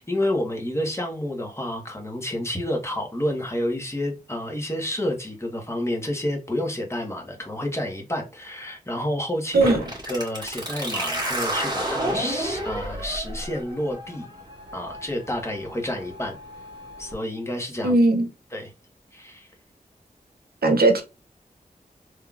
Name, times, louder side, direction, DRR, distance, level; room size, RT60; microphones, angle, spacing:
voice 1, 0.0-14.3 14.7-16.4 17.0-17.9 18.5-18.7 19.1-19.5, left 1 dB, 15° left, 1.4 m, -29 dB
sound 1, 9.6-17.1, right 1 dB, 25° right, 1.9 m, -31 dB
voice 2, 17.8-18.3 20.6-21.0, right 2 dB, 80° right, 0.8 m, -18 dB
3.6 x 3.2 x 2.4 m
cardioid pair, 50°, 16 cm